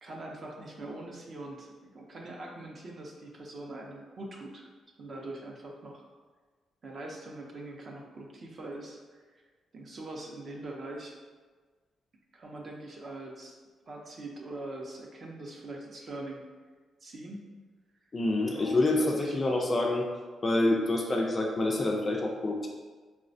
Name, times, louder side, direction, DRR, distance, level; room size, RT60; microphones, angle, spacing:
voice 1, 0.0-4.7 5.0-6.1 6.8-9.2 9.7-11.1 12.3-13.6 13.9-16.4 17.0-17.5 18.5-19.4, right 2 dB, 35° right, 0 dB, 0.5 m, -42 dB
voice 2, 18.1-20.1 20.4-22.7, left 2 dB, 25° left, 0 dB, 0.3 m, -27 dB
4.0 x 2.1 x 2.5 m, 1.4 s
wide cardioid pair, 165°, 0 cm